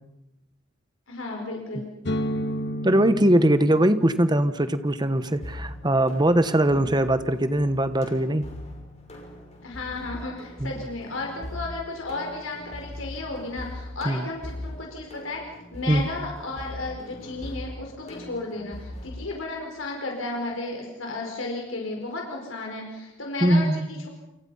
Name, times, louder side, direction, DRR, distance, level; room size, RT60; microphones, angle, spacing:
voice 1, 1.1-1.9 6.7-6.8 9.6-24.1, left 2 dB, 85° left, 0 dB, 4.8 m, -34 dB
sound 1, 2.0-9.7, left 1 dB, 60° left, 1.5 m, -36 dB
voice 2, 2.8-8.4 10.6-10.7 14.0-14.3 15.9-16.1 23.4-23.9, right 1 dB, 20° right, 11 dB, 1.2 m, -21 dB
sound 2, 5.1-19.2, left 1 dB, 35° left, 6.4 m, -41 dB
29.5 x 28.0 x 5.6 m, 0.95 s
head